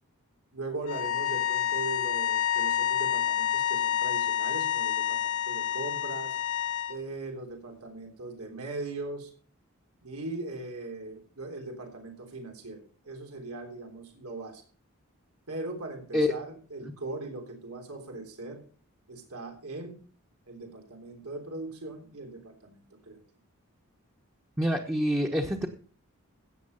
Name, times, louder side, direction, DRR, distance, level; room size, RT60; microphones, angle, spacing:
voice 1, 0.5-6.4 6.9-9.3 10.0-14.6 15.5-18.6 19.1-20.0 20.5-23.2, right 2 dB, 90° right, 3 dB, 3.4 m, -39 dB
sound 1, 0.8-7.0, left 11 dB, 80° left, 1.7 m, -28 dB
voice 2, 24.6-25.7, equal, 10° right, 1 dB, 1.1 m, -26 dB
16.5 x 7.0 x 5.5 m, 0.40 s
head